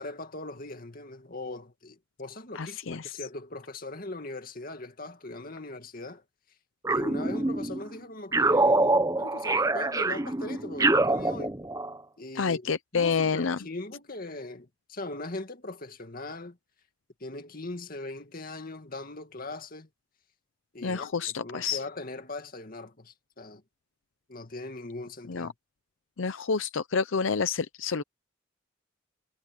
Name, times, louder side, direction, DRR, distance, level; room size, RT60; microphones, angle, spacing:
voice 1, 0.0-6.2 6.9-11.6 12.2-16.6 17.2-19.9 20.7-23.6 24.3-25.5, left 2 dB, 45° left, 2.2 m, -40 dB
voice 2, 2.5-3.2 12.3-13.6 20.8-21.8 25.3-25.5 26.2-28.0, left 5 dB, 80° left, 0.6 m, -28 dB
sound 1, 6.8-7.8 8.3-12.0, right 2 dB, 15° right, 0.8 m, -25 dB
head